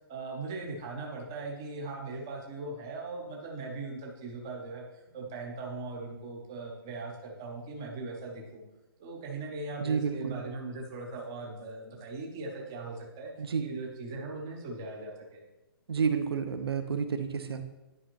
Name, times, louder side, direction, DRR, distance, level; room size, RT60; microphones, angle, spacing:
voice 1, 0.1-4.8 5.1-8.6 9.0-13.3 13.6-15.4, right 3 dB, 10° right, 0 dB, 0.3 m, -39 dB
voice 2, 9.8-10.4 13.4-13.6 15.9-17.7, right 6 dB, 80° right, 8 dB, 0.8 m, -30 dB
9.9 x 5.0 x 2.9 m, 1.0 s
hypercardioid pair, 180°, 13 cm